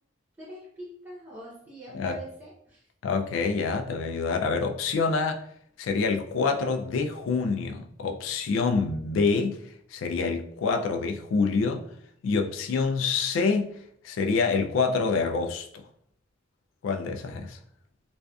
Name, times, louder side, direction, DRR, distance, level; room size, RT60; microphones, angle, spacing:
voice 1, 0.4-2.9, right 1 dB, 10° right, 0.6 m, -44 dB
voice 2, 3.0-5.4 5.8-9.6 9.9-11.9 12.2-13.8 14.0-15.8 16.8-17.6, left 4 dB, 85° left, 0.3 m, -26 dB
2.4 x 2.3 x 2.2 m
head